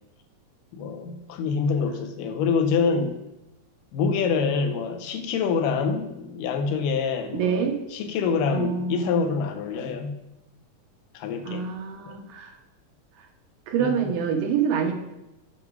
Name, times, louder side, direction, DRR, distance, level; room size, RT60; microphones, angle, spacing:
voice 1, 0.7-3.2 3.9-10.2 11.1-11.7 12.1-12.2 13.8-14.1, left 5 dB, 85° left, 6 dB, 2.4 m, -26 dB
voice 2, 7.3-7.8 8.5-9.2 11.4-12.5 13.7-14.9, right 7 dB, 90° right, 3 dB, 2.7 m, -26 dB
7.5 x 5.9 x 4.6 m, 0.95 s
omnidirectional pair, 3.8 m